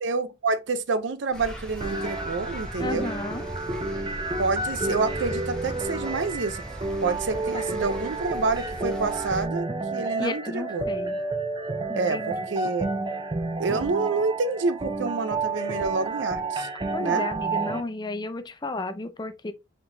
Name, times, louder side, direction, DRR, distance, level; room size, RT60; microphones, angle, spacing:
voice 1, 0.0-3.1 4.4-6.6 7.0-10.9 12.0-12.9 13.6-16.7 17.0-17.3, right 4 dB, 70° right, 0.5 m, -28 dB
sound 1, 1.3-9.4, equal, 5° left, 1.0 m, -39 dB
sound 2, 1.8-17.8, right 3 dB, 25° right, 0.6 m, -30 dB
voice 2, 2.8-3.5 7.3-7.8 10.2-11.2 11.9-12.7 16.9-19.5, left 2 dB, 20° left, 0.5 m, -33 dB
4.8 x 3.7 x 2.6 m
head